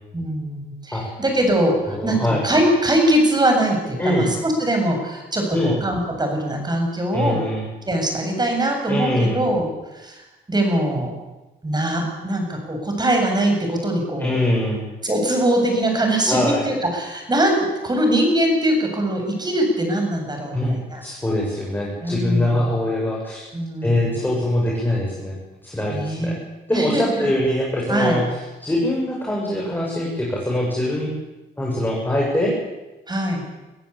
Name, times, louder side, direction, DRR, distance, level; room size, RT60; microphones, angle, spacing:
voice 1, 0.1-7.4 7.9-10.2 10.5-11.1 11.6-14.3 15.0-21.0 22.0-22.7 23.5-24.2 25.9-26.3 26.7-27.3 27.9-28.2 33.1-33.5, right 1 dB, 20° right, 3 dB, 7.7 m, -22 dB
voice 2, 1.9-2.4 4.0-4.3 5.5-5.8 7.1-7.6 8.9-9.4 14.2-14.8 16.3-16.7 20.5-20.7 21.0-23.4 23.8-25.3 25.6-26.4 26.7-28.2 28.6-31.1 31.6-32.5, left 1 dB, 10° left, -3 dB, 6.7 m, -22 dB
24.0 x 14.5 x 8.7 m, 1.1 s
cardioid pair, 90°, 20 cm